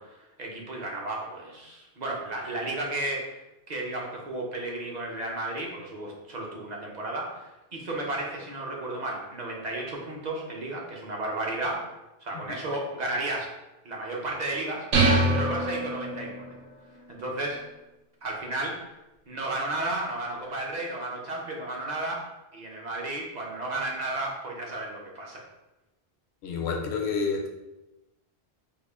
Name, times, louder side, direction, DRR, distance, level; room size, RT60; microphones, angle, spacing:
voice 1, 0.0-3.3 3.7-11.9 12.2-13.5 13.8-14.9 15.3-16.6 17.1-17.6 18.2-18.8 19.3-22.3 22.5-25.4, right 2 dB, 45° right, -2 dB, 0.8 m, -33 dB
sound 1, 14.9-16.5, right 2 dB, 90° right, 0.9 m, -24 dB
voice 2, 26.4-27.5, left 5 dB, 85° left, 2 dB, 0.9 m, -28 dB
3.5 x 2.4 x 3.5 m, 1.0 s
omnidirectional pair, 1.1 m